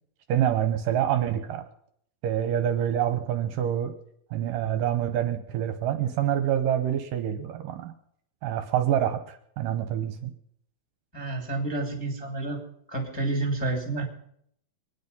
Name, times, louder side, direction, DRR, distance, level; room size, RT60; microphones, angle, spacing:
voice 1, 0.3-1.6 2.2-3.9 4.3-7.9 8.4-10.3, right 10 dB, 75° right, 8 dB, 2.4 m, -26 dB
voice 2, 11.1-12.6 12.9-14.0, right 2 dB, 10° left, 1 dB, 2.0 m, -29 dB
24.0 x 9.5 x 5.5 m, 0.69 s
omnidirectional pair, 4.2 m